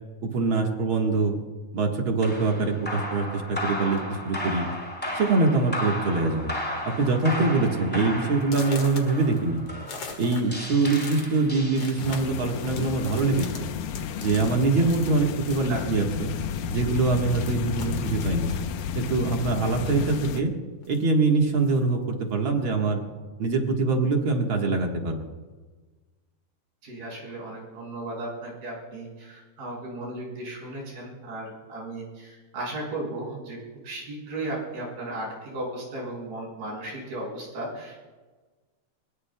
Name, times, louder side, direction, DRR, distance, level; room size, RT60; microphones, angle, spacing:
voice 1, 0.2-1.4 1.7-4.7 5.1-6.5 6.8-9.6 10.2-13.7 14.2-16.3 16.7-18.5 18.9-20.5 20.9-23.0 23.4-25.2, right 3 dB, 50° right, 1 dB, 1.6 m, -24 dB
sound 1, 2.2-12.4, left 1 dB, ahead, 5.4 m, -34 dB
sound 2, 3.9-4.2 5.0-5.1 5.5-5.8 6.1-6.5 7.0-7.1 7.6-7.7 8.4-16.5 16.7-20.5 20.8-21.9, left 4 dB, 45° left, 2.2 m, -44 dB
sound 3, 12.0-20.4, left 8 dB, 80° left, 2.6 m, -32 dB
voice 2, 26.8-33.6 33.8-38.0, right 1 dB, 75° right, -3 dB, 7.9 m, -35 dB
22.5 x 22.5 x 2.3 m, 1.3 s
omnidirectional pair, 4.3 m